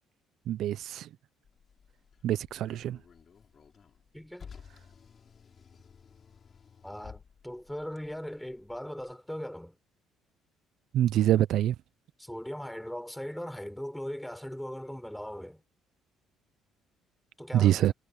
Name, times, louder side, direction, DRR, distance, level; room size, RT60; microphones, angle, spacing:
voice 1, 0.5-1.1 2.2-3.0 10.9-11.7 17.5-17.9, right 12 dB, 65° right, 0.6 m, -25 dB
Car, 1.4-9.1, left 6 dB, 40° left, 5.5 m, -54 dB
voice 2, 4.1-4.5 6.8-9.8 12.2-15.6 17.4-17.9, equal, 5° left, 4.8 m, -39 dB
cardioid pair, 115°, 0 cm